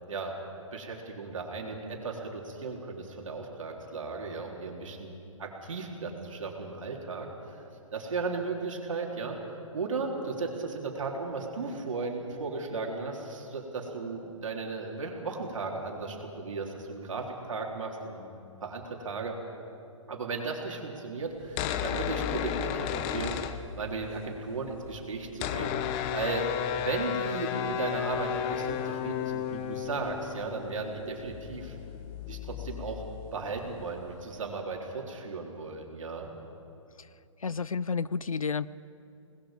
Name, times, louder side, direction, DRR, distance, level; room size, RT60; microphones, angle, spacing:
voice 1, 0.7-5.1 5.4-7.6 7.9-9.4 9.7-18.3 18.6-19.4 20.1-23.4 23.8-31.8 32.3-33.0 33.3-36.3, right 4 dB, 70° right, 0 dB, 3.9 m, -35 dB
sound 1, 21.4-24.2 24.4-24.5 24.7-34.1, left 9 dB, 30° left, 1.0 m, -34 dB
voice 2, 37.4-38.7, left 5 dB, 90° left, 19 dB, 0.6 m, -31 dB
27.5 x 20.0 x 5.3 m, 2.8 s
hypercardioid pair, 130°, 17 cm